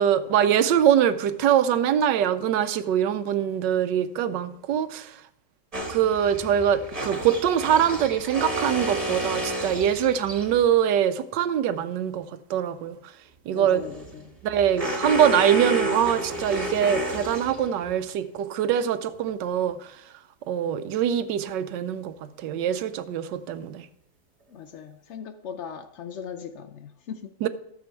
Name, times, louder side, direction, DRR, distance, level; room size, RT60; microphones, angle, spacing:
voice 1, 0.0-5.1 5.9-13.0 13.5-13.8 14.4-19.8 20.5-23.9 27.4-27.5, right 9 dB, 75° right, 1.3 m, -23 dB
sound 1, 5.7-10.7 13.7-17.9, right 1 dB, 20° right, 1.3 m, -31 dB
voice 2, 13.5-14.3 24.5-27.3, left 7 dB, 85° left, 0.6 m, -39 dB
13.5 x 6.9 x 4.5 m
omnidirectional pair, 2.0 m